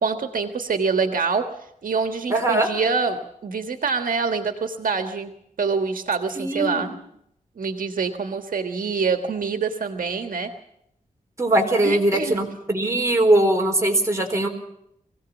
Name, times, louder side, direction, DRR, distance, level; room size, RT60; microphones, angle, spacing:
voice 1, 0.0-1.5 1.8-5.3 5.6-6.9 7.6-10.5 11.8-12.4, right 5 dB, 80° right, 6 dB, 1.5 m, -25 dB
voice 2, 2.3-2.7 6.4-6.9 11.4-14.5, right 1 dB, 20° right, 2 dB, 4.2 m, -20 dB
23.0 x 16.5 x 7.2 m, 0.77 s
wide cardioid pair, 135°, 14 cm